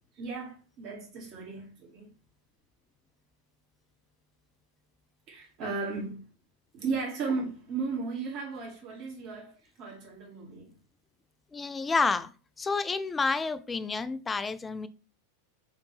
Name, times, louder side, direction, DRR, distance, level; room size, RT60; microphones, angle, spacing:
voice 1, 0.2-2.1 5.3-6.2 6.7-10.8, right 4 dB, 40° right, 1.9 m, -35 dB
voice 2, 11.5-12.3 12.6-14.9, left 4 dB, 15° left, 0.4 m, -29 dB
4.8 x 3.2 x 3.4 m
figure-of-eight pair, 90°, 0 cm